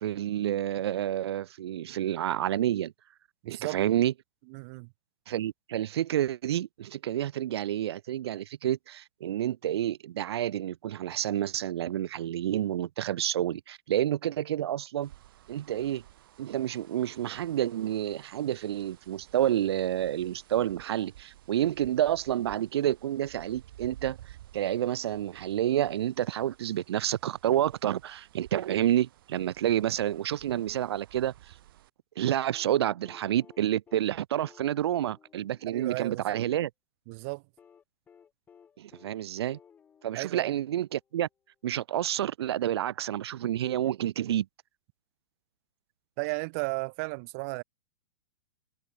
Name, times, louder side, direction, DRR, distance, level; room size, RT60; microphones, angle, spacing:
voice 1, 0.0-2.9 3.5-4.1 5.3-15.1 15.5-16.0 16.4-24.2 24.5-31.3 32.2-36.7 38.8-39.6 40.0-41.3 41.6-44.5, right 12 dB, 90° right, 0.4 m, -29 dB
voice 2, 3.4-3.8 4.5-4.9 35.7-36.4 37.1-37.4 40.1-40.5 46.2-47.6, right 31 dB, 35° right, 0.5 m, -34 dB
sound 1, 15.0-31.9, right 14 dB, 60° right, 4.3 m, -54 dB
sound 2, 32.5-36.6 37.6-41.2 42.6-42.7, left 7 dB, 15° left, 1.0 m, -59 dB
hypercardioid pair, 155°, 13 cm